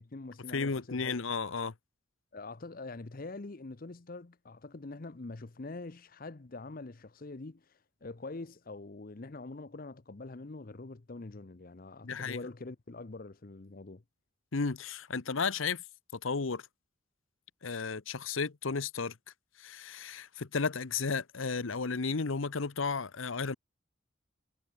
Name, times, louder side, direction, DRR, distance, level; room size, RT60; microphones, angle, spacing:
voice 1, 0.0-1.2 2.3-7.7 8.0-14.0, left 3 dB, 45° left, 0.7 m, -44 dB
voice 2, 0.5-1.7 12.0-12.4 14.5-15.8 16.1-16.6 17.6-19.2 19.6-23.5, left 4 dB, 75° left, 0.9 m, -33 dB
head